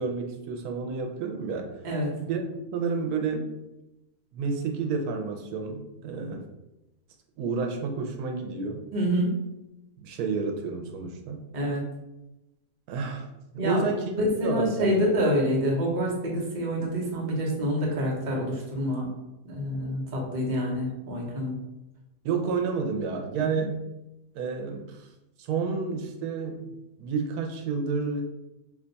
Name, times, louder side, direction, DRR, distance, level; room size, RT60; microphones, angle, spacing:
voice 1, 0.0-1.7 2.2-2.4 2.7-3.6 4.3-6.4 7.4-8.8 10.0-11.4 12.9-13.3 13.6-14.1 14.4-14.9 22.2-23.9 24.3-25.1 25.4-26.7 27.0-28.2, right 5 dB, 90° right, 3 dB, 1.1 m, -30 dB
voice 2, 8.9-9.3 11.5-11.8 13.6-13.9 14.2-19.1 19.4-21.5 23.4-23.6, equal, 40° right, -3 dB, 0.8 m, -27 dB
2.8 x 2.2 x 3.9 m, 0.95 s
omnidirectional pair, 1.6 m